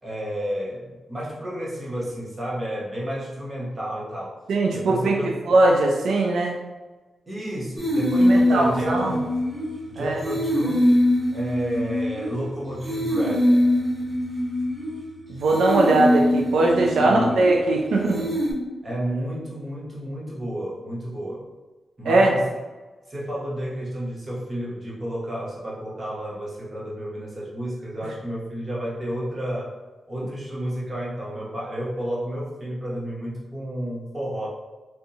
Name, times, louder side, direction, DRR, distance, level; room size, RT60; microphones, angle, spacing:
voice 1, 0.0-4.4 4.7-5.4 7.3-9.3 9.9-11.0 11.3-13.5 17.0-17.4 18.8-21.5 22.0-22.5 23.1-29.7 30.1-34.5, equal, 30° right, -6 dB, 1.0 m, -31 dB
voice 2, 4.5-5.1 5.5-6.5 8.2-9.1 10.0-10.2 15.3-18.3 22.1-22.3, right 2 dB, 90° right, 0 dB, 0.4 m, -20 dB
sound 1, 7.8-9.8 10.2-12.4 12.8-15.0 15.5-17.6 18.1-18.5, left 1 dB, 5° right, 1.3 m, -23 dB
3.4 x 2.7 x 2.7 m, 1.2 s
wide cardioid pair, 110°, 0 cm